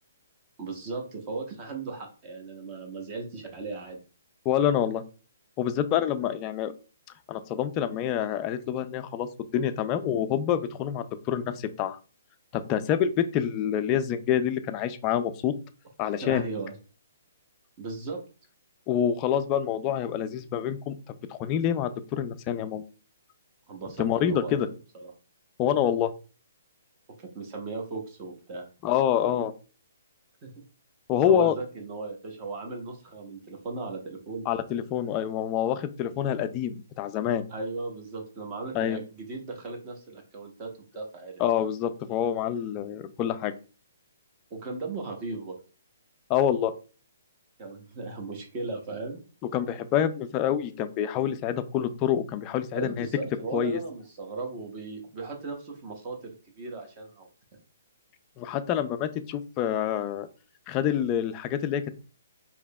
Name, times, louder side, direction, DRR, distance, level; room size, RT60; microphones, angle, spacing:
voice 1, 0.6-4.0 16.2-16.7 17.8-18.2 23.7-25.1 27.2-28.7 30.4-30.6 31.3-34.5 37.5-41.4 44.5-45.6 47.6-49.2 52.7-57.3, right 3 dB, 25° right, 2 dB, 0.9 m, -37 dB
voice 2, 4.5-5.0 5.6-6.7 7.3-9.3 9.5-12.0 12.5-15.5 16.0-16.4 18.9-21.0 21.3-22.8 24.0-24.7 25.6-26.1 28.8-29.5 31.1-31.5 34.5-37.4 38.7-39.0 41.4-43.5 46.3-46.7 49.5-53.1 53.5-53.8 58.4-60.3 60.7-61.9, left 9 dB, 20° left, 9 dB, 0.3 m, -27 dB
4.7 x 2.7 x 2.2 m, 0.36 s
hypercardioid pair, 160°, 0 cm